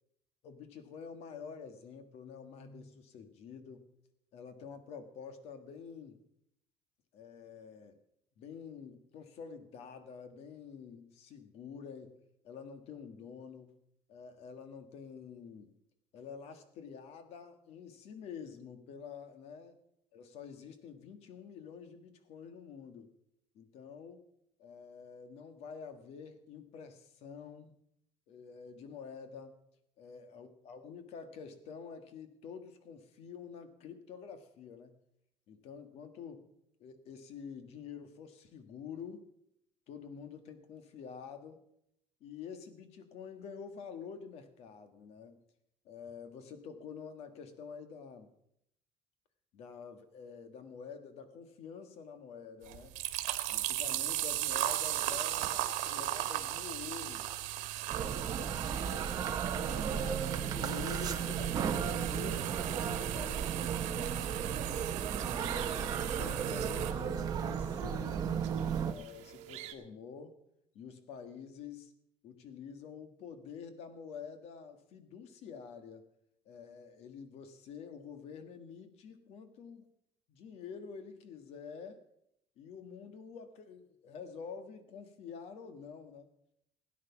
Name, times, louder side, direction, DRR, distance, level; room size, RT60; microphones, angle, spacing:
voice 1, 0.4-3.8 4.3-6.2 7.1-8.0 8.4-12.1 12.4-13.7 14.1-15.7 16.1-19.8 20.1-23.1 23.5-24.3 24.6-27.8 28.3-29.5 30.0-34.9 35.5-36.5 36.8-39.3 39.9-41.6 42.2-45.4 45.8-48.3 49.5-53.0 53.5-57.3 57.9-64.4 65.3-68.5 68.8-70.3 70.7-71.9 72.2-76.0 76.4-79.9 80.3-82.0 82.6-86.3, left 6 dB, 55° left, 9 dB, 1.6 m, -48 dB
sound 1, 52.6-66.9, right 14 dB, 85° right, 1.5 m, -37 dB
sound 2, 57.9-68.9, right 7 dB, 30° right, 1.1 m, -35 dB
sound 3, 62.4-69.7, right 12 dB, 70° right, 1.6 m, -52 dB
17.0 x 9.6 x 5.9 m, 0.75 s
cardioid pair, 175°, 12 cm